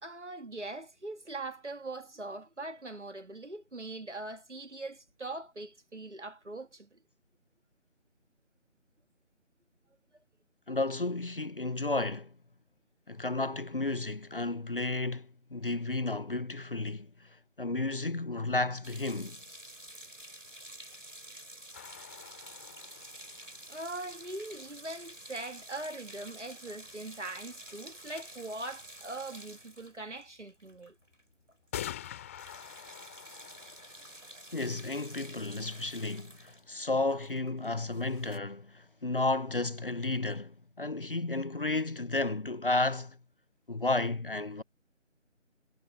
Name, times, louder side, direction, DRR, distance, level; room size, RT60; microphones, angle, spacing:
voice 1, 0.0-7.0 23.7-31.0, right 2 dB, 65° right, 2.5 m, -41 dB
voice 2, 10.7-12.3 13.1-17.3 17.6-19.4 34.5-43.2 43.7-44.6, left 2 dB, 45° left, 0.9 m, -32 dB
sound 1, 18.8-31.2 31.5-31.7 31.9-38.4, right 1 dB, 80° right, 6.3 m, -50 dB
sound 2, 21.7-24.5 27.1-27.2 27.7-27.8 28.1-28.2 28.5-29.1 30.4-30.5 31.7-35.3, left 11 dB, 10° left, 4.1 m, -46 dB
figure-of-eight pair, 160°, 37 cm